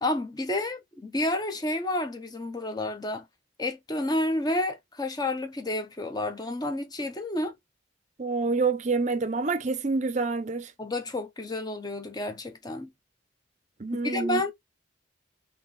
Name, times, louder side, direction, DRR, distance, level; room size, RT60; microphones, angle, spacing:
voice 1, 0.0-3.2 3.6-7.5 10.8-12.9 14.0-14.5, left 1 dB, 20° left, 0.7 m, -30 dB
voice 2, 8.2-10.7 13.8-14.4, right 3 dB, 35° right, 0.5 m, -27 dB
3.6 x 2.9 x 3.8 m
head